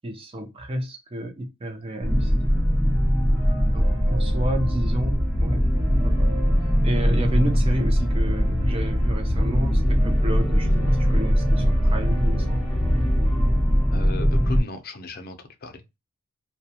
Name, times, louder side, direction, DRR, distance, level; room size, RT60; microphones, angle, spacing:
voice 1, 0.0-2.3 3.7-5.6 5.9-6.3 6.8-12.7, right 1 dB, 25° right, 0.6 m, -31 dB
sound 1, 2.0-14.6, equal, 5° left, 0.8 m, -21 dB
voice 2, 13.9-15.8, left 2 dB, 45° left, 0.5 m, -36 dB
2.3 x 2.2 x 2.8 m
head